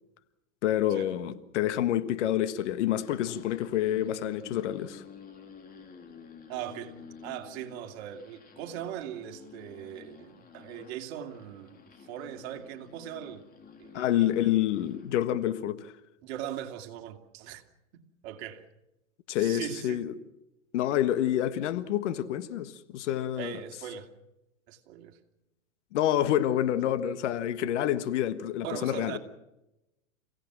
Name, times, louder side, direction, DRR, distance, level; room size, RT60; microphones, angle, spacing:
voice 1, 0.6-5.0 13.9-15.9 19.3-20.1 20.7-23.6 25.9-29.2, left 12 dB, 60° left, 1.6 m, -28 dB
sound 1, 2.9-15.1, left 6 dB, 20° left, 3.4 m, -50 dB
voice 2, 6.5-7.0 7.2-13.4 13.8-14.5 16.2-17.6 17.9-18.6 19.4-20.0 23.4-24.1 24.7-25.2 28.6-29.2, right 10 dB, 50° right, 2.7 m, -40 dB
29.5 x 17.0 x 6.1 m
hypercardioid pair, 120°, 40 cm